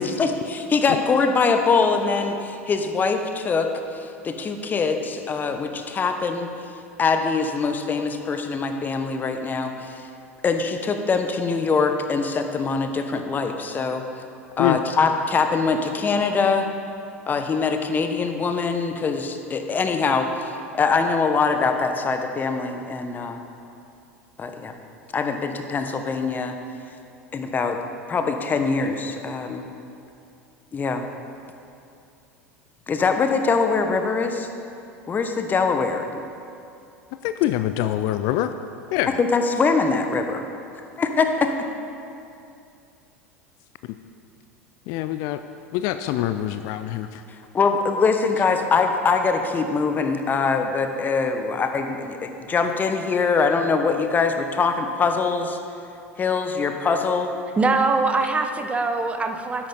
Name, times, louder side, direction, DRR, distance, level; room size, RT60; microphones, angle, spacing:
voice 1, 0.2-6.5 7.0-10.1 10.4-14.0 14.6-16.7 17.3-23.4 24.4-24.7 25.1-26.6 27.3-27.8 28.1-29.6 30.7-31.0 32.9-34.5 35.1-36.2 39.2-40.4 41.0-41.5 47.5-55.6 56.2-57.3, left 4 dB, 25° left, 6 dB, 1.0 m, -23 dB
voice 2, 37.2-38.5 38.9-39.2 44.9-45.4 45.7-47.2, left 13 dB, 50° left, 10 dB, 0.4 m, -24 dB
voice 3, 57.6-59.7, right 3 dB, 15° right, 6 dB, 0.9 m, -22 dB
13.0 x 10.5 x 3.9 m, 2.6 s
figure-of-eight pair, 75°, 7 cm